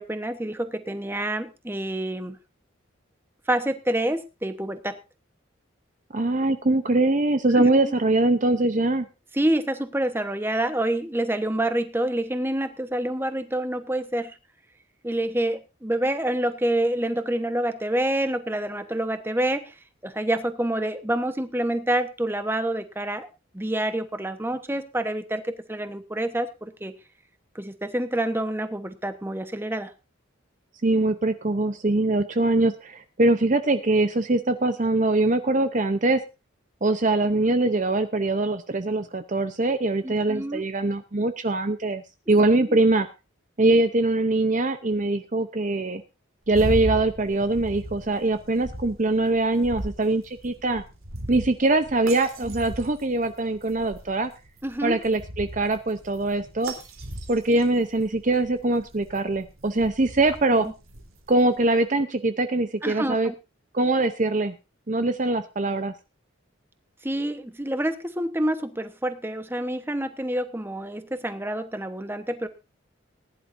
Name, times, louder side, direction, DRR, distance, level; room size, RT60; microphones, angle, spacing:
voice 1, 0.0-2.4 3.5-5.0 7.5-7.9 9.3-14.4 15.0-19.7 20.0-23.3 23.5-26.9 27.5-29.9 40.0-40.6 42.7-42.8 52.4-52.5 54.6-55.0 60.5-60.7 62.8-63.3 67.0-72.5, right 1 dB, 10° right, 9 dB, 1.0 m, -27 dB
voice 2, 6.1-9.1 30.8-36.2 36.8-42.0 42.3-43.1 43.6-46.0 46.5-50.8 51.3-54.3 54.8-56.7 57.3-60.7 61.3-63.3 63.7-64.5 64.9-65.9, right 2 dB, 35° right, 9 dB, 0.7 m, -22 dB
sound 1, 46.5-61.6, right 1 dB, 85° right, 3.5 m, -38 dB
19.5 x 11.0 x 2.6 m, 0.28 s
head